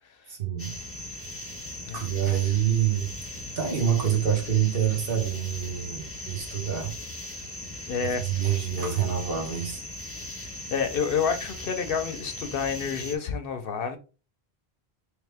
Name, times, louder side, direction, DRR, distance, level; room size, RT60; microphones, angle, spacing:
voice 1, 0.3-0.8 1.9-3.1 3.6-6.9 8.2-9.8, right 9 dB, 65° right, 1.3 m, -26 dB
sound 1, 0.6-13.2, left 1 dB, 15° left, 1.1 m, -39 dB
voice 2, 7.9-8.6 10.4-14.0, left 6 dB, 65° left, 0.8 m, -29 dB
3.6 x 3.2 x 3.3 m
omnidirectional pair, 1.1 m